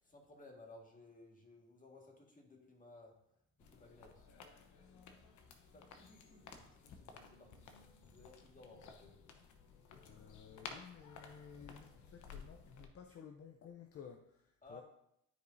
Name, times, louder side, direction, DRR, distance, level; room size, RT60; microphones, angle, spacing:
voice 1, 0.0-3.1 3.6-4.2 5.7-6.7 7.0-7.7 8.0-9.1 14.6-14.8, left 2 dB, 25° left, 1 dB, 1.8 m, -59 dB
sound 1, 3.6-12.9, left 5 dB, 75° left, 1.0 m, -55 dB
voice 2, 10.0-14.8, left 7 dB, 50° left, 4 dB, 0.7 m, -55 dB
12.0 x 4.9 x 2.7 m, 0.80 s
cardioid pair, 90°, 30 cm